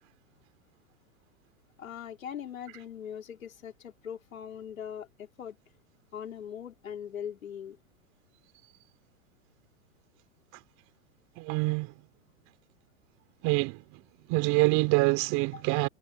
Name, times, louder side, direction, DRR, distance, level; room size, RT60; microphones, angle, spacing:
voice 1, 1.8-5.6 6.1-7.8 15.5-15.6, left 8 dB, 85° left, 3.9 m, -41 dB
voice 2, 11.4-11.9 13.4-14.0 14.3-15.9, right 24 dB, 45° right, 3.0 m, -26 dB
hypercardioid pair, 120°, 40 cm